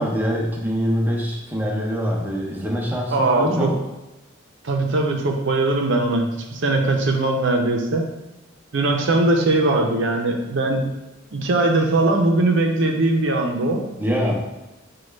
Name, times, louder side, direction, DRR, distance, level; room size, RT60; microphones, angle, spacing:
voice 1, 0.0-3.8 14.0-14.3, equal, 10° right, -2 dB, 0.7 m, -24 dB
voice 2, 3.1-3.7 4.6-8.1 8.7-10.8 11.3-13.9, right 2 dB, 65° right, 2 dB, 0.6 m, -20 dB
6.2 x 2.3 x 3.2 m, 0.99 s
head